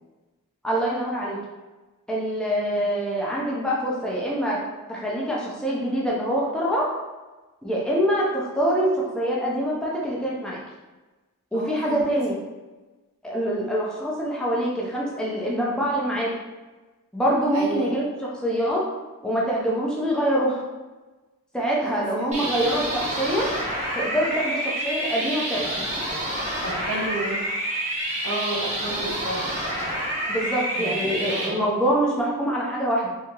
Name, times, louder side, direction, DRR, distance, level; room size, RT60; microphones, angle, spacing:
voice 1, 0.6-1.4 2.1-4.6 4.9-6.9 7.6-10.6 11.5-12.4 13.2-16.3 17.1-18.8 19.2-20.6 21.5-23.5 23.9-25.9 30.3-33.1, equal, 5° left, -5 dB, 0.7 m, -25 dB
voice 2, 11.5-12.1 17.5-17.9 21.8-22.5 26.6-27.4 28.2-29.5 30.7-31.7, right 1 dB, 75° right, -4 dB, 0.9 m, -32 dB
sound 1, 22.3-31.5, right 1 dB, 35° right, 0.9 m, -28 dB
3.7 x 2.8 x 2.9 m, 1.2 s
head